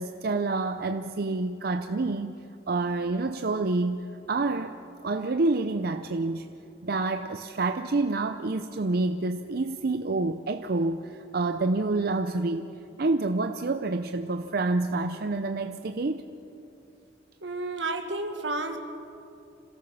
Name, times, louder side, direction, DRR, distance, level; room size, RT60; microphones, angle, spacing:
voice 1, 0.0-4.8 5.0-6.5 6.8-12.7 13.0-16.2, right 3 dB, 55° right, 8 dB, 0.6 m, -28 dB
voice 2, 17.4-18.8, right 2 dB, 85° right, 6 dB, 1.8 m, -31 dB
27.0 x 17.5 x 5.6 m, 2.7 s
head